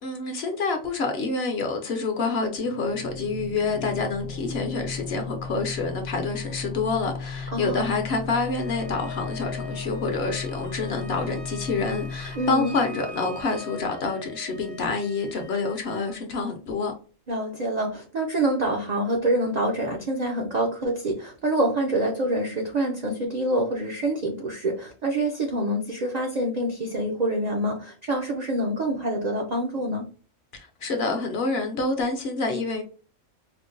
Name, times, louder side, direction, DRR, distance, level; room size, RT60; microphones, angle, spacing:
voice 1, 0.0-16.9 30.5-32.8, left 3 dB, 60° left, 0.8 m, -27 dB
sound 1, 2.6-14.0, left 5 dB, 85° left, 1.0 m, -36 dB
voice 2, 7.5-7.9 12.4-12.7 17.3-30.1, right 1 dB, 60° right, 0.4 m, -26 dB
Wind instrument woodwind instrument, 8.3-16.1, left 2 dB, 85° right, 2.2 m, -43 dB
4.4 x 2.1 x 2.5 m
omnidirectional pair, 1.4 m